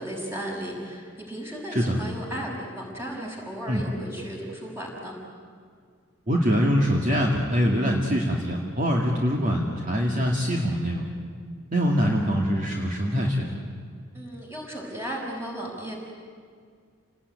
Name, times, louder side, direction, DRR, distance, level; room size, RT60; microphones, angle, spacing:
voice 1, 0.0-5.1 14.1-16.0, right 1 dB, 10° right, -2 dB, 6.3 m, -35 dB
voice 2, 6.3-11.1 11.7-13.6, equal, 35° right, -1 dB, 2.4 m, -24 dB
29.0 x 19.5 x 9.8 m, 2.1 s
head